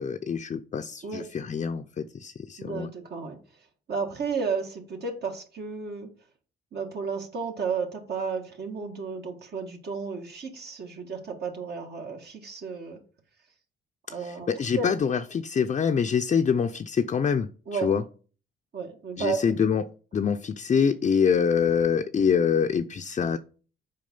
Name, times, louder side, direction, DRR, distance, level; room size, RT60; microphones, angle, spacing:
voice 1, 0.0-2.9 14.1-18.0 19.2-19.8 20.1-23.4, left 6 dB, 35° left, 0.6 m, -25 dB
voice 2, 2.6-3.4 3.9-6.1 6.7-13.0 14.1-14.5 14.8-14.9 17.7-17.9 18.7-19.5, right 5 dB, 55° right, 1.8 m, -32 dB
7.5 x 4.7 x 5.5 m
cardioid pair, 90°, 20 cm